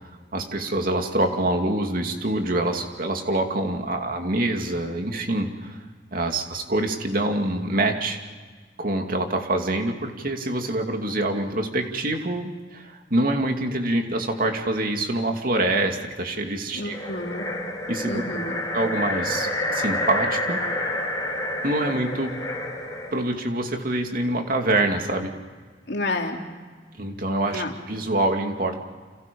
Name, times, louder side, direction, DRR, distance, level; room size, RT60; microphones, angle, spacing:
voice 1, 0.3-5.8 6.1-8.2 8.8-17.1 17.9-18.2 18.7-20.6 21.6-22.3 23.1-25.3 27.0-28.8, right 1 dB, 55° right, 4 dB, 2.5 m, -25 dB
voice 2, 16.7-17.5 18.0-18.6 25.9-26.4 27.5-27.7, left 2 dB, 70° left, 2 dB, 3.0 m, -29 dB
sound 1, 16.8-23.2, left 1 dB, 20° left, 5.4 m, -29 dB
30.0 x 27.5 x 5.4 m, 1.4 s
head